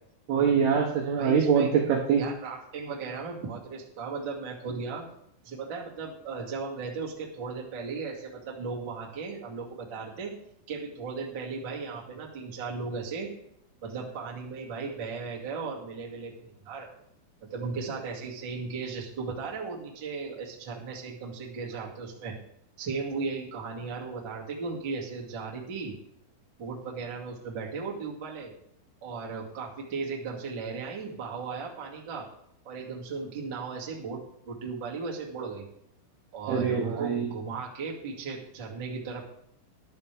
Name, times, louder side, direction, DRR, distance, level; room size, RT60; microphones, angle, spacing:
voice 1, 0.3-2.2 36.5-37.3, right 6 dB, 75° right, 1 dB, 2.4 m, -24 dB
voice 2, 1.1-1.7 2.2-5.1 5.4-10.3 10.7-13.3 13.8-16.9 17.4-22.4 22.8-25.9 26.6-28.5 29.0-32.2 32.6-35.6 36.3-39.3, right 4 dB, 40° right, -2 dB, 1.6 m, -36 dB
14.0 x 11.0 x 3.5 m, 0.73 s
omnidirectional pair, 5.9 m